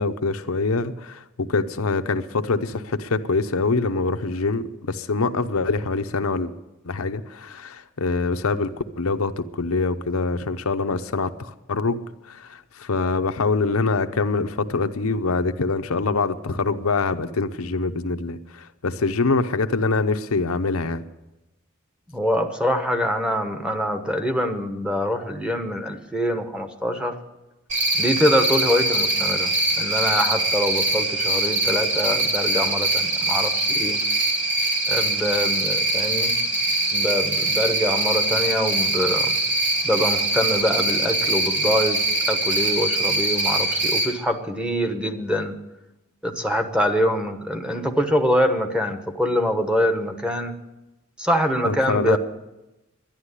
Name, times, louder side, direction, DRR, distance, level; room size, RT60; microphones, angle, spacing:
voice 1, 0.0-6.5 6.8-12.0 12.3-21.0 51.6-52.2, left 3 dB, 90° left, 8 dB, 0.8 m, -24 dB
voice 2, 22.1-27.2 28.0-34.0 34.9-36.3 36.9-39.3 39.8-42.0 42.3-45.5 46.2-50.5 51.2-52.2, equal, 5° right, 6 dB, 1.1 m, -24 dB
Cricket, 27.7-44.1, right 2 dB, 35° right, 2.9 m, -23 dB
11.5 x 11.0 x 9.7 m, 0.98 s
head